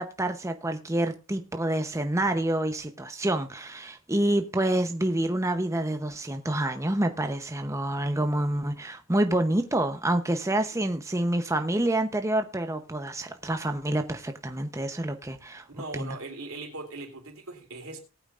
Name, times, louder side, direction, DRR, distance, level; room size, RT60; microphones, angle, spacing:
voice 1, 0.0-15.6 15.9-16.2, right 1 dB, 15° right, 0.8 m, -27 dB
voice 2, 15.7-18.0, right 3 dB, 80° right, 3.2 m, -39 dB
19.0 x 8.8 x 2.5 m
head